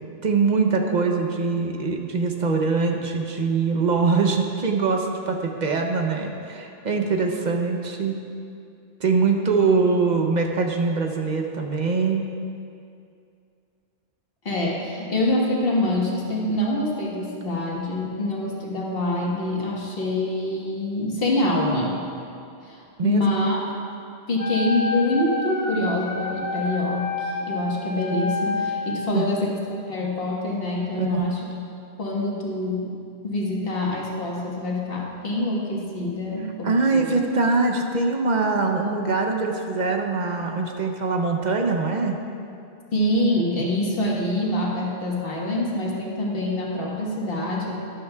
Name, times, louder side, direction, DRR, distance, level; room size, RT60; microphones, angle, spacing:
voice 1, 0.2-8.2 9.0-12.2 23.0-23.2 29.1-29.3 31.0-31.3 36.6-42.2, right 4 dB, 50° right, 3 dB, 0.8 m, -23 dB
voice 2, 14.4-22.1 22.6-23.6 24.3-31.4 32.0-33.0 33.2-37.1 42.9-47.8, left 1 dB, 65° left, -3 dB, 1.6 m, -25 dB
Wind instrument woodwind instrument, 24.4-29.2, left 2 dB, 20° left, 0.8 m, -29 dB
12.5 x 11.0 x 2.3 m, 2.5 s
omnidirectional pair, 1.0 m